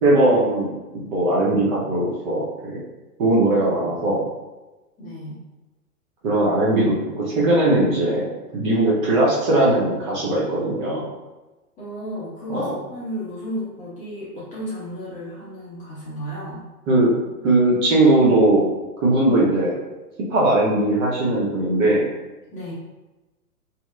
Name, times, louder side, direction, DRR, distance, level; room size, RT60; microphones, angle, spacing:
voice 1, 0.0-0.7 0.9-2.5 2.7-2.8 3.2-4.2 6.2-8.2 8.5-11.0 12.5-12.7 16.9-17.1 17.4-18.6 19.0-19.7 20.3-22.0, right 2 dB, 30° right, -6 dB, 0.6 m, -19 dB
voice 2, 5.0-5.4 11.8-16.6 22.5-22.7, equal, 15° left, -9 dB, 0.6 m, -33 dB
2.7 x 2.0 x 2.3 m, 1.1 s
hypercardioid pair, 120°, 46 cm